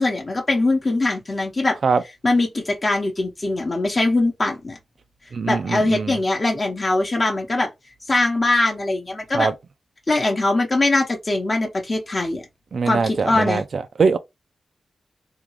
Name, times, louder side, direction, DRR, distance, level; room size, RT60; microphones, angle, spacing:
voice 1, 0.0-1.8 2.2-4.8 5.5-7.7 8.1-9.5 10.1-12.4 12.9-13.6, left 2 dB, 35° left, 0.7 m, -21 dB
voice 2, 5.3-6.2 9.3-9.5 12.7-14.2, right 5 dB, 65° right, 0.3 m, -22 dB
3.6 x 2.3 x 3.0 m
wide cardioid pair, 90°, 0 cm